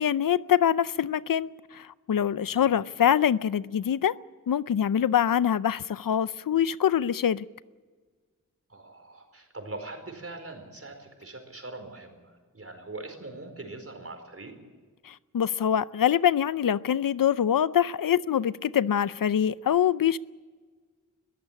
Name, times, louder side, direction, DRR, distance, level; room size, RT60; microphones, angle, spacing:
voice 1, 0.0-4.1 4.5-7.4 15.0-20.2, left 9 dB, 85° left, 0.6 m, -24 dB
voice 2, 2.4-2.7 8.7-14.5, right 2 dB, 45° right, 4.7 m, -42 dB
22.0 x 14.5 x 8.7 m
wide cardioid pair, 95°, 32 cm